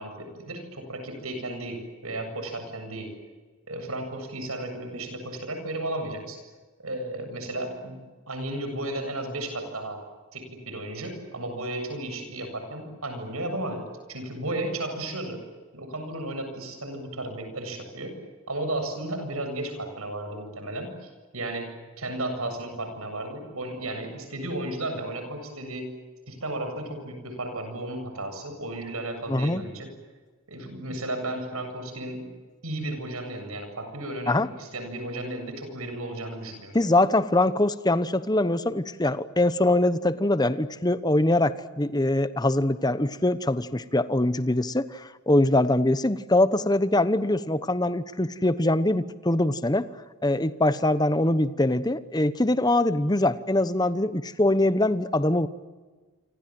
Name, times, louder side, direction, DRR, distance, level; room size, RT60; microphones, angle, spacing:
voice 1, 0.0-3.1 3.7-6.4 6.8-8.0 8.3-10.0 10.3-13.8 14.1-15.4 15.7-18.1 18.5-25.9 26.3-29.9 30.5-32.3 32.6-36.8, right 1 dB, 80° right, 6 dB, 7.7 m, -34 dB
voice 2, 29.3-29.6 34.3-34.5 36.7-49.9 50.2-55.5, left 1 dB, 20° left, 13 dB, 1.0 m, -23 dB
28.5 x 25.5 x 7.8 m, 1.4 s
head